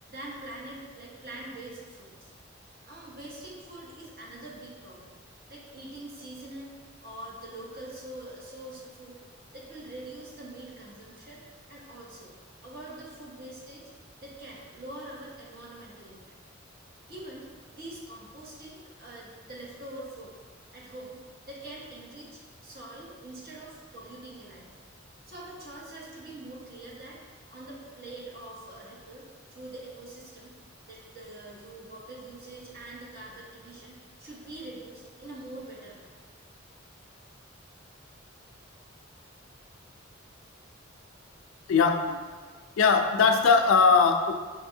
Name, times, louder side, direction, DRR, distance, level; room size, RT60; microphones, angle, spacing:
voice 1, 0.1-2.3 2.8-5.2 5.5-6.7 7.0-9.2 9.5-11.4 11.7-12.4 12.6-13.9 14.2-16.4 17.1-20.4 20.7-21.2 21.5-24.7 25.3-27.2 27.5-29.3 29.5-30.6 30.9-36.2, right 1 dB, 50° right, -3 dB, 0.9 m, -44 dB
voice 2, 41.7-42.2 42.8-44.3, left 5 dB, 85° left, 5 dB, 0.4 m, -20 dB
5.3 x 2.6 x 2.7 m, 1.5 s
head